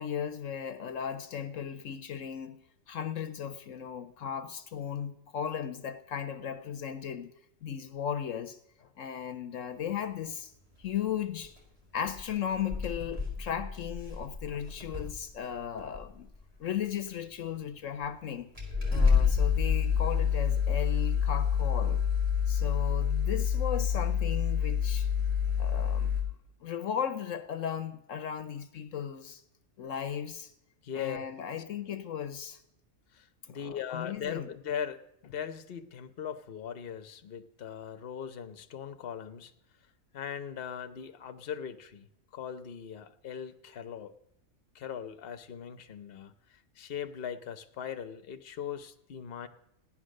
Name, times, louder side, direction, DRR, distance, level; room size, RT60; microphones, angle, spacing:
voice 1, 0.0-2.6 2.9-7.3 7.6-10.5 10.8-11.5 11.9-16.3 16.6-18.5 18.9-22.0 22.5-25.1 25.6-26.2 26.6-29.4 29.8-30.5 30.9-32.6 33.5-34.5, left 8 dB, 70° left, 1.1 m, -36 dB
sound 1, 11.4-11.6 12.1-12.2 12.5-15.3 15.8-16.2 17.1-17.2 18.0-18.1 18.6-26.2, left 7 dB, 25° right, 3.1 m, -28 dB
voice 2, 30.8-31.3 33.1-39.5 40.1-42.1 42.3-44.1 44.7-49.5, left 8 dB, 50° left, 1.0 m, -39 dB
15.0 x 10.5 x 6.4 m
omnidirectional pair, 1.4 m